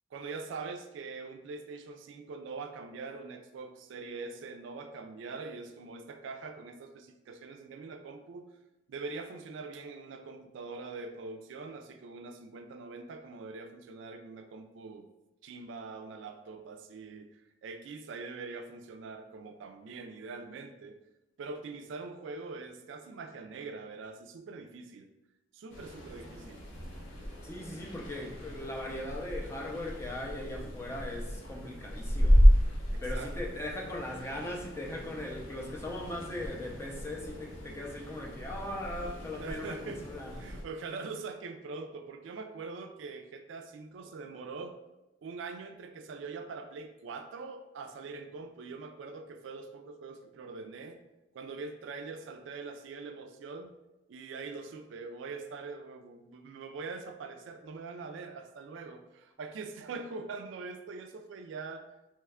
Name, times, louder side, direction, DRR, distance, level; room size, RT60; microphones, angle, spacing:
voice 1, 0.1-8.5 8.9-15.1 15.4-21.0 21.4-25.1 25.5-26.7 32.9-33.6 39.4-40.1 40.4-44.8 45.2-51.0 51.3-53.8 54.1-61.9, right 4 dB, 65° right, 6 dB, 0.3 m, -43 dB
sound 1, 25.7-40.6, equal, 75° left, 0.6 m, -31 dB
voice 2, 27.4-32.4 33.0-40.3, left 1 dB, 15° left, -1 dB, 0.4 m, -39 dB
3.0 x 2.2 x 3.4 m, 0.98 s
head